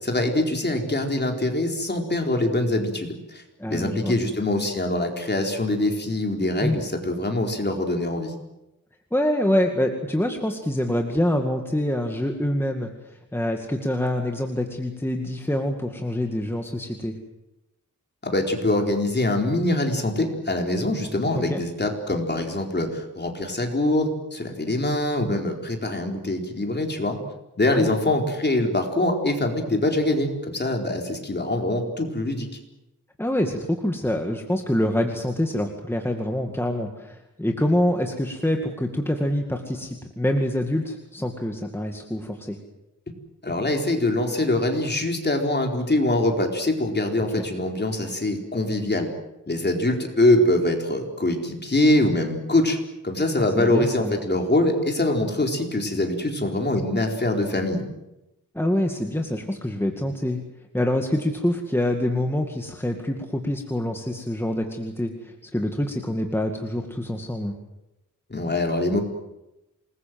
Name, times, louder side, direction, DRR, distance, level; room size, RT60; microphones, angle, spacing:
voice 1, 0.0-8.3 18.2-27.2 27.6-32.5 43.4-49.1 49.5-52.8 53.0-57.8 68.3-69.0, left 1 dB, 30° left, 2 dB, 4.4 m, -24 dB
voice 2, 3.6-4.2 6.6-6.8 9.1-17.1 21.4-21.6 27.6-27.9 33.2-42.6 47.3-47.4 53.4-54.1 58.5-60.4 60.7-67.5, left 1 dB, 5° left, 3 dB, 2.2 m, -26 dB
27.5 x 21.0 x 7.8 m, 0.93 s
wide cardioid pair, 135°, 34 cm